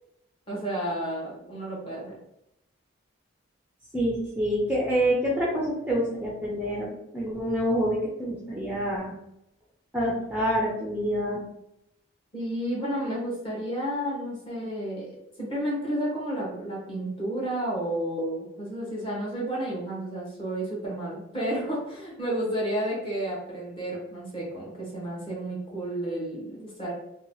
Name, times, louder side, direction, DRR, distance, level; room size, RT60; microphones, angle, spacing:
voice 1, 0.5-2.2 12.3-15.1 15.4-26.9, right 1 dB, 25° left, -4 dB, 1.0 m, -31 dB
voice 2, 3.9-9.1 9.9-11.4, equal, 5° right, -5 dB, 0.4 m, -27 dB
2.8 x 2.2 x 3.1 m, 0.82 s
head